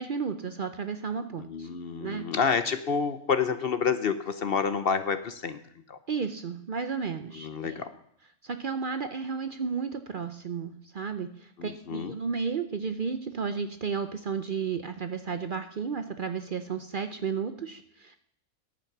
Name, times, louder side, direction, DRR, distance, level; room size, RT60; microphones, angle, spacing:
voice 1, 0.0-1.7 2.0-2.3 6.1-7.8 8.4-18.2, right 5 dB, 50° right, 9 dB, 0.7 m, -33 dB
voice 2, 1.4-5.6 5.9-6.0 7.3-7.9 11.6-12.2, left 6 dB, 55° left, 11 dB, 0.8 m, -29 dB
10.5 x 8.5 x 5.9 m, 0.70 s
omnidirectional pair, 1.4 m